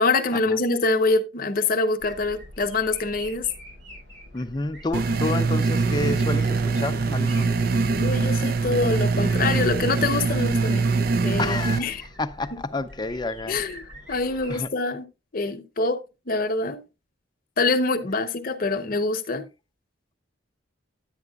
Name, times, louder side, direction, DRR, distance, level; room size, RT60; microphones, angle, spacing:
voice 1, 0.0-3.5 8.0-10.9 11.2-12.0 13.5-13.8 14.1-15.1 15.3-16.8 17.6-19.5, left 3 dB, 45° left, 0.8 m, -25 dB
sound 1, 2.0-14.6, equal, 70° right, 6.0 m, -45 dB
voice 2, 4.3-7.6 11.4-11.8 12.2-13.6 14.5-14.7, left 2 dB, 20° left, 0.5 m, -29 dB
sound 2, 4.9-11.8, right 4 dB, 50° right, 0.4 m, -23 dB
10.5 x 8.9 x 2.3 m
head